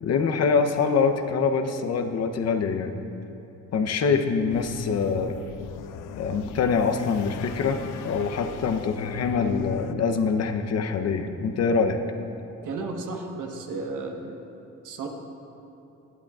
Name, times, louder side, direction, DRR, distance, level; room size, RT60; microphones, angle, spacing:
voice 1, 0.0-2.9 3.7-5.3 6.2-7.8 8.0-12.0, left 5 dB, 55° left, 7 dB, 0.8 m, -24 dB
sound 1, 4.5-9.9, left 10 dB, 90° left, 0.5 m, -40 dB
voice 2, 12.6-14.4 14.8-15.1, right 3 dB, 85° right, 2 dB, 1.4 m, -33 dB
17.5 x 11.5 x 2.4 m, 2.9 s
cardioid pair, 90°, 30 cm